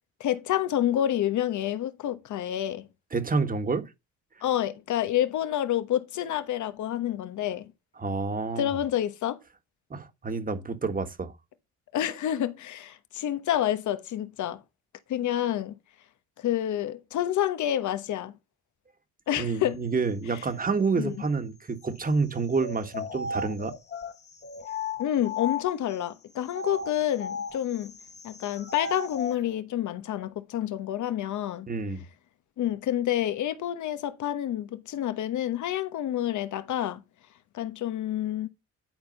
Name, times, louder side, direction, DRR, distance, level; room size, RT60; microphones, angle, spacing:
voice 1, 0.2-2.9 4.4-7.7 8.5-9.4 11.9-14.6 15.1-15.7 16.4-18.3 19.3-19.8 20.9-21.1 25.0-27.9 28.2-31.7 32.6-37.0 37.5-38.5, left 11 dB, 75° left, 1.2 m, -28 dB
voice 2, 3.1-3.9 8.0-8.7 9.9-11.3 19.4-23.7 31.7-32.0, right 4 dB, 30° right, 1.6 m, -28 dB
sound 1, 22.6-26.0 26.5-29.4, left 4 dB, 35° left, 1.2 m, -36 dB
11.0 x 4.6 x 5.4 m
cardioid pair, 90°, 30 cm